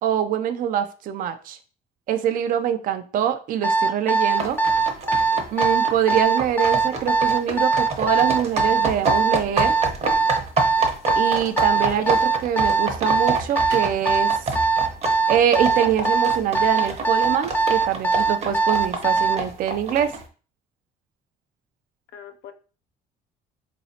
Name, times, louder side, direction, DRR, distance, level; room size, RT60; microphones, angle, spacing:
voice 1, 0.0-1.6 2.1-4.6 5.5-9.7 11.2-14.4 15.3-20.1, right 9 dB, 55° right, 9 dB, 0.4 m, -24 dB
Alarm, 3.6-19.4, right 4 dB, 10° left, 0.5 m, -20 dB
sound 1, 4.4-20.2, right 3 dB, 40° right, 0.8 m, -28 dB
voice 2, 11.8-12.4 22.1-22.5, left 8 dB, 85° left, 7 dB, 0.4 m, -40 dB
Crackle, 13.1-14.8, right 5 dB, 75° right, 0.7 m, -41 dB
3.9 x 3.0 x 2.7 m, 0.38 s
cardioid pair, 110°, 17 cm